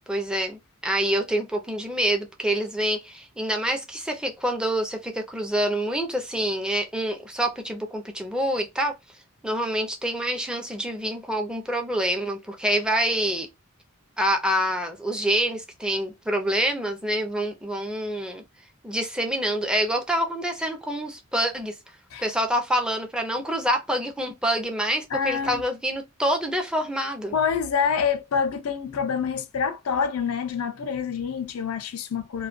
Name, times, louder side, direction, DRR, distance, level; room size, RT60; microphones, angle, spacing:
voice 1, 0.1-9.0 9.4-13.5 14.2-18.4 18.8-21.7 22.2-27.3, right 1 dB, 5° right, 0.5 m, -26 dB
voice 2, 25.1-25.6 27.3-32.5, left 6 dB, 80° left, 0.4 m, -26 dB
2.3 x 2.2 x 2.4 m
head